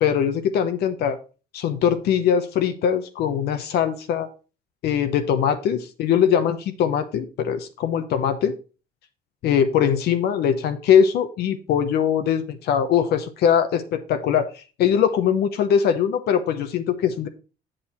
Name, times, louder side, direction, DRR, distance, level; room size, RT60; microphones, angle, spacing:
voice 1, 0.0-1.2 1.5-4.3 4.8-8.5 9.4-17.3, left 8 dB, 75° left, 7 dB, 0.9 m, -21 dB
7.8 x 6.1 x 4.2 m, 0.34 s
cardioid pair, 110°, 17 cm